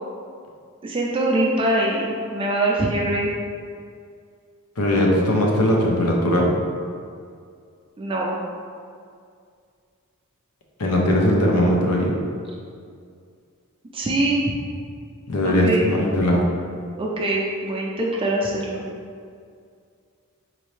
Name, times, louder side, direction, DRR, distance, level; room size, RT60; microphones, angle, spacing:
voice 1, 0.8-3.3 8.0-8.4 13.9-14.4 15.4-15.9 17.0-18.8, right 1 dB, 25° right, -2 dB, 0.4 m, -23 dB
voice 2, 4.8-6.5 10.8-12.1 15.3-16.4, left 1 dB, 90° left, -1 dB, 0.7 m, -19 dB
4.1 x 2.6 x 3.2 m, 2.2 s
head